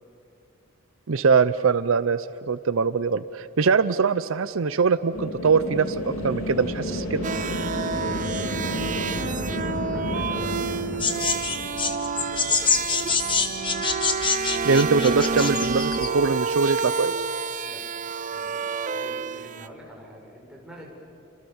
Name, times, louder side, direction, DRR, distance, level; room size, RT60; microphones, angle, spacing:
voice 1, 1.1-7.3 14.6-17.2, right 5 dB, 65° right, 14 dB, 0.6 m, -22 dB
sound 1, 5.1-12.7, left 1 dB, 75° left, 3.4 m, -31 dB
sound 2, 7.2-19.7, right 5 dB, 40° right, 0.8 m, -29 dB
voice 2, 8.4-11.5 12.2-13.6 17.6-17.8 18.3-20.9, equal, 5° right, -2 dB, 5.6 m, -46 dB
sound 3, 11.0-16.1, left 5 dB, 25° left, 1.6 m, -25 dB
30.0 x 26.0 x 7.1 m, 2.5 s
head